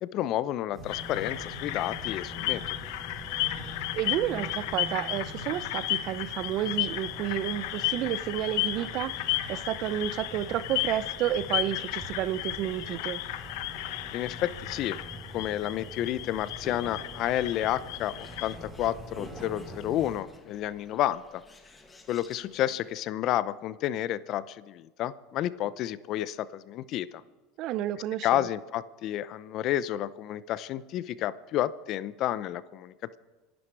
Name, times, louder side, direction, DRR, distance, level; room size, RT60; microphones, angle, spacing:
voice 1, 0.0-2.6 14.1-15.0 15.3-21.4 22.1-27.2 28.2-33.2, left 12 dB, 50° left, 16 dB, 0.7 m, -30 dB
sound 1, 0.7-20.2, equal, 15° right, 4.3 m, -44 dB
sound 2, 0.9-18.6, left 16 dB, 70° left, 1.1 m, -34 dB
voice 2, 3.9-9.2 9.5-13.2 27.6-28.4, right 12 dB, 55° right, 16 dB, 0.7 m, -31 dB
Bird, 17.8-22.9, left 3 dB, 20° left, 2.2 m, -55 dB
26.0 x 11.5 x 4.8 m, 1.3 s
supercardioid pair, 105°, 0 cm